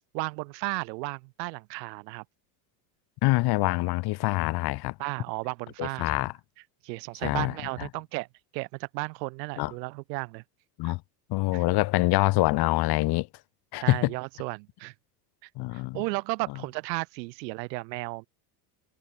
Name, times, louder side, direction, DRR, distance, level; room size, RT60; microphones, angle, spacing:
voice 1, 0.1-2.2 5.0-6.3 6.8-8.3 8.5-10.4 10.8-10.9 11.5-11.6 13.8-14.9 15.4-18.3, right 26 dB, 75° right, 2.2 m, -34 dB
voice 2, 3.2-4.9 5.8-6.3 7.2-7.5 9.6-9.7 10.8-11.0 11.3-13.3 13.7-14.1 15.6-16.0, left 21 dB, 50° left, 0.8 m, -25 dB
supercardioid pair, 100°, 50 cm